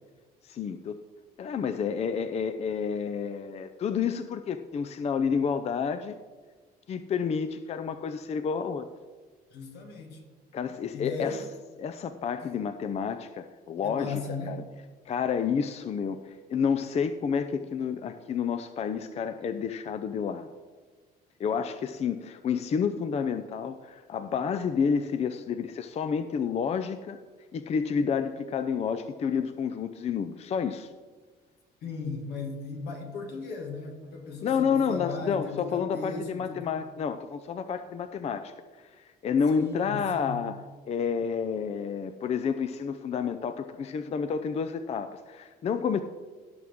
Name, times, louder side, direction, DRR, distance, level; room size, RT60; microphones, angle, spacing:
voice 1, 0.4-1.0 1.4-6.2 6.9-8.9 10.5-11.4 11.8-14.2 14.5-14.6 15.1-20.5 21.4-27.2 27.5-30.9 34.4-38.5 39.0-40.6 40.9-46.0, left 6 dB, 40° left, 10 dB, 0.5 m, -30 dB
voice 2, 9.5-10.2 10.9-11.4 12.4-12.6 13.8-14.7 31.8-36.7 39.5-40.5, left 4 dB, 80° left, 3 dB, 2.0 m, -37 dB
17.0 x 6.3 x 3.7 m, 1.4 s
cardioid pair, 110°, 17 cm